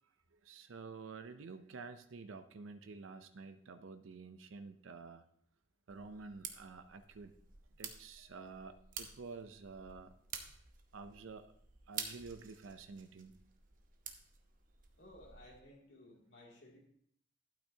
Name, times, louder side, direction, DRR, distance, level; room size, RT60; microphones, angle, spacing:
voice 1, 0.4-5.2 5.9-7.3 7.8-10.1 10.9-11.5 11.9-13.4, right 4 dB, 85° right, 9 dB, 0.5 m, -50 dB
sound 1, 5.9-15.6, right 7 dB, 45° right, 0.9 m, -50 dB
voice 2, 15.0-16.8, left 1 dB, 60° left, -2 dB, 2.5 m, -57 dB
12.0 x 9.0 x 2.8 m, 0.67 s
head